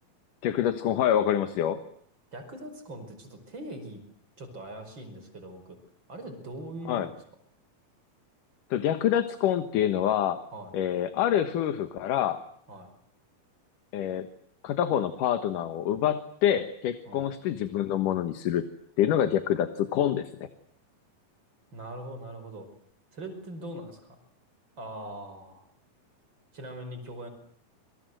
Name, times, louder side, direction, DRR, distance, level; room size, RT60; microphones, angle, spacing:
voice 1, 0.4-1.8 6.9-7.1 8.7-10.4 10.7-12.4 13.9-14.3 14.6-18.6 19.0-20.5, left 10 dB, 65° left, 9 dB, 2.7 m, -26 dB
voice 2, 2.3-4.0 4.4-5.8 6.1-7.1 10.5-10.7 12.7-12.9 17.1-17.3 21.7-22.7 23.1-24.2 24.8-25.6 26.5-27.3, right 1 dB, 30° right, 8 dB, 5.7 m, -41 dB
28.5 x 25.0 x 8.0 m, 0.65 s
omnidirectional pair, 4.3 m